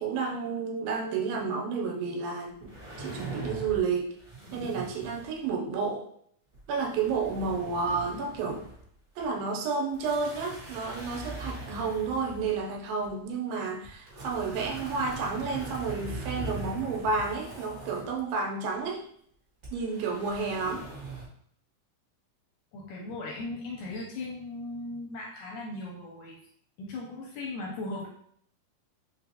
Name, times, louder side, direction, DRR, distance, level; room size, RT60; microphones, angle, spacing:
voice 1, 0.0-2.7 3.0-4.2 4.5-6.1 6.7-8.6 9.2-19.0 19.7-20.9, right 4 dB, 85° right, 0 dB, 2.4 m, -31 dB
sound 1, 2.6-3.9 4.2-5.5 6.5-8.8 9.2-9.3 9.9-13.1 13.8-18.2 19.6-21.2, right 2 dB, 60° right, 0.8 m, -41 dB
voice 2, 22.7-26.4 26.8-28.1, left 2 dB, 80° left, -2 dB, 1.9 m, -38 dB
5.3 x 2.6 x 2.8 m, 0.65 s
omnidirectional pair, 4.0 m